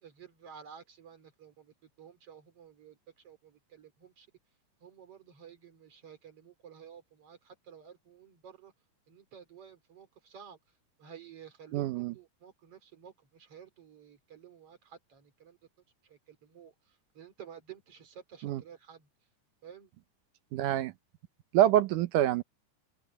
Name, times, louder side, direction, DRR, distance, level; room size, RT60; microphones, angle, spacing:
voice 1, 0.0-3.0 3.2-4.3 4.8-8.7 9.1-10.6 11.0-15.6 16.0-16.7 17.2-19.1 19.6-19.9, right 8 dB, 45° right, 3.5 m, -52 dB
voice 2, 11.7-12.1 18.4-18.6 20.5-20.9 21.5-22.4, right 12 dB, 75° right, 2.5 m, -26 dB
open air
omnidirectional pair, 3.8 m